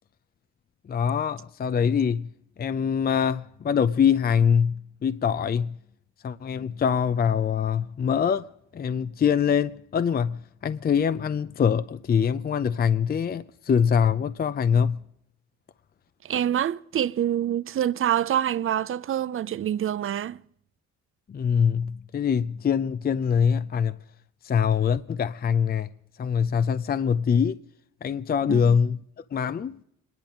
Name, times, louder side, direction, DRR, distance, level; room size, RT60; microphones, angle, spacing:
voice 1, 0.9-2.3 2.6-5.8 6.2-8.5 8.7-15.0 21.3-24.0 24.4-25.9 26.2-27.6 28.0-29.8, left 7 dB, 30° left, 0.5 m, -24 dB
voice 2, 16.2-20.4 28.4-28.8, right 10 dB, 45° right, 0.6 m, -26 dB
25.0 x 11.0 x 5.1 m
cardioid pair, 90°, 30 cm